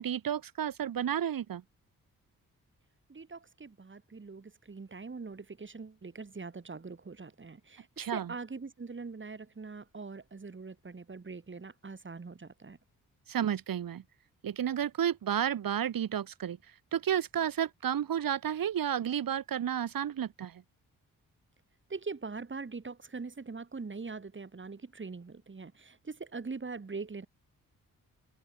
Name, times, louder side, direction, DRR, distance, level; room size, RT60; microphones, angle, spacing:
voice 1, 0.0-1.6 8.0-8.3 13.3-14.0 14.4-16.6 16.9-20.6, right 9 dB, 75° right, 4.9 m, -31 dB
voice 2, 3.1-12.8 21.9-27.3, right 4 dB, 35° right, 3.2 m, -42 dB
cardioid pair, 65°, 34 cm